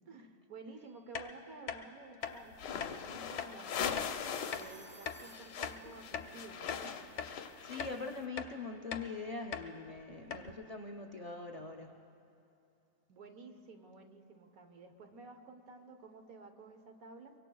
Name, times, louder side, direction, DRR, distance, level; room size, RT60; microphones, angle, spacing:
voice 1, 0.1-4.1 4.5-7.0 10.3-10.6 13.1-17.3, right 3 dB, 60° right, 5 dB, 1.4 m, -53 dB
Telephone, 0.8-1.3 4.4-6.2 7.2-8.0, right 2 dB, 20° right, 0.9 m, -58 dB
sound 1, 1.1-1.3 1.7-1.8 2.2-2.4 2.8-2.9 3.4-3.5 4.0-4.1 4.5-4.7 5.1-5.2 5.6-6.3 6.7-6.8 7.2-7.3 7.8-8.0 8.4-8.5 8.9-9.1 9.5-9.7 10.0-10.1 10.3-10.5, left 7 dB, 55° left, 0.9 m, -40 dB
sound 2, 2.5-4.7 5.0-8.2, left 7 dB, 90° left, 1.4 m, -40 dB
voice 2, 7.6-12.0, left 3 dB, 75° left, 2 dB, 0.3 m, -43 dB
24.0 x 23.5 x 2.3 m, 2.7 s
omnidirectional pair, 1.8 m